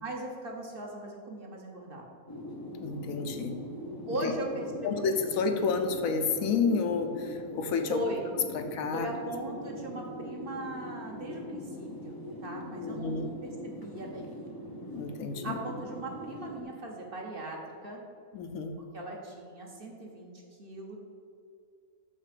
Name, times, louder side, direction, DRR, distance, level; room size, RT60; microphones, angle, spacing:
voice 1, 0.0-2.1 4.1-5.2 7.9-8.2 8.9-12.1 12.4-14.3 15.4-18.0 18.9-21.0, right 1 dB, 45° right, 0 dB, 1.0 m, -39 dB
sound 1, 2.3-16.6, equal, 25° left, 0.6 m, -41 dB
voice 2, 2.8-3.6 4.2-4.3 4.8-8.0 8.5-9.1 12.7-13.3 14.9-15.6 18.3-18.8, left 5 dB, 75° left, 6 dB, 1.1 m, -30 dB
6.3 x 5.8 x 5.0 m, 2.3 s
omnidirectional pair, 1.5 m